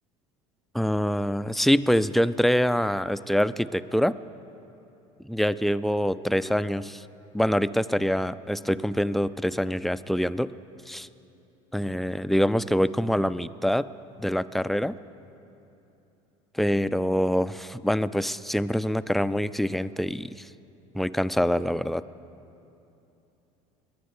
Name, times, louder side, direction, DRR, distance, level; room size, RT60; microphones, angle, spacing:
voice 1, 0.7-4.2 5.2-7.0 7.3-10.5 10.9-11.1 11.7-13.9 14.2-15.0 16.5-20.5 20.9-22.0, equal, ahead, 15 dB, 0.3 m, -25 dB
21.5 x 9.4 x 6.6 m, 3.0 s
hypercardioid pair, 80°, 17 cm